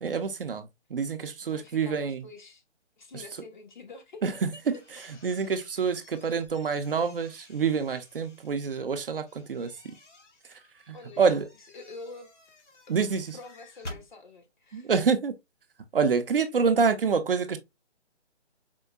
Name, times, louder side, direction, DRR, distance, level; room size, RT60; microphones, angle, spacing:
voice 1, 0.0-2.3 3.1-3.2 4.2-9.7 10.5-10.6 10.9-11.5 12.9-13.4 14.7-15.3 15.9-17.6, right 5 dB, 55° right, 0.5 m, -27 dB
voice 2, 1.5-2.6 3.0-4.2 4.7-4.8 10.9-11.3 11.7-12.3 12.9-13.0 13.3-14.9, left 3 dB, 45° left, 0.8 m, -46 dB
sound 1, 4.3-8.6 9.3-14.1, left 1 dB, 90° left, 1.3 m, -51 dB
4.4 x 2.1 x 2.2 m
hypercardioid pair, 160°, 35 cm